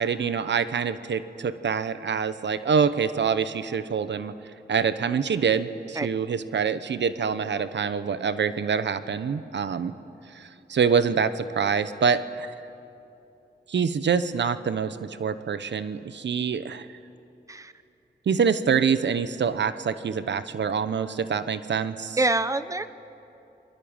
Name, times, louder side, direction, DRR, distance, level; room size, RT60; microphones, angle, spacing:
voice 1, 0.0-4.3 4.7-9.9 10.3-12.5 13.7-16.9 18.3-22.2, right 6 dB, 85° right, 12 dB, 1.0 m, -25 dB
voice 2, 22.2-22.9, right 2 dB, 20° right, 12 dB, 1.0 m, -25 dB
29.5 x 23.0 x 8.9 m, 2.8 s
wide cardioid pair, 100°, 18 cm